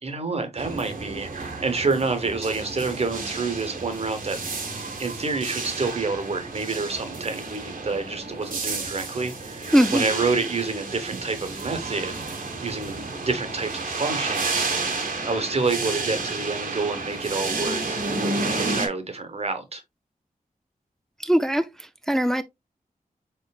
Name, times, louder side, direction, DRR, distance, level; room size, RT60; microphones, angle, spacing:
voice 1, 0.0-4.4 5.0-12.2 12.6-19.8, right 3 dB, 45° right, 1.0 m, -28 dB
sound 1, 0.6-18.9, right 3 dB, 65° right, 1.2 m, -31 dB
voice 2, 9.7-10.0 21.2-22.4, equal, 5° left, 0.3 m, -21 dB
4.5 x 4.5 x 2.3 m
wide cardioid pair, 130°, 15 cm